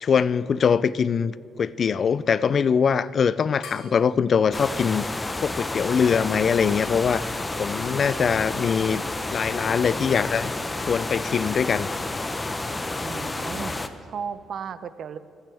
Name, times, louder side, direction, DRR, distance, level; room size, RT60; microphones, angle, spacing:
voice 1, 0.0-5.1 5.4-7.3 7.6-9.0 9.3-10.5 10.8-11.9, left 6 dB, 50° left, 18 dB, 0.4 m, -22 dB
sound 1, 3.6-6.4, left 4 dB, 85° left, 1.8 m, -47 dB
sound 2, 4.5-13.9, left 2 dB, 20° left, 0.7 m, -30 dB
voice 2, 13.0-13.8 14.1-15.2, right 7 dB, 60° right, 13 dB, 0.6 m, -35 dB
27.0 x 9.0 x 3.5 m, 2.5 s
cardioid pair, 90°, 0 cm